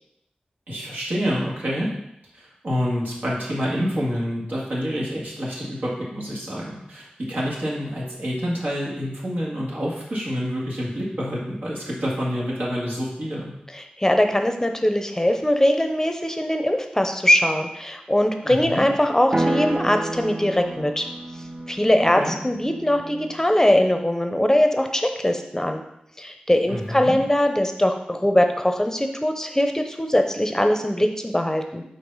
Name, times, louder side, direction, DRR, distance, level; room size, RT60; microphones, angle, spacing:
voice 1, 0.7-1.9 2.3-13.5 18.4-18.8 22.2-22.3 26.7-27.1, equal, 80° right, -5 dB, 2.0 m, -27 dB
voice 2, 13.7-21.1 21.7-25.8 26.2-31.8, left 1 dB, 15° left, 6 dB, 0.7 m, -21 dB
sound 1, 19.3-23.4, right 2 dB, 35° right, 0.6 m, -30 dB
4.9 x 4.2 x 5.4 m, 0.80 s
wide cardioid pair, 50°, 3 cm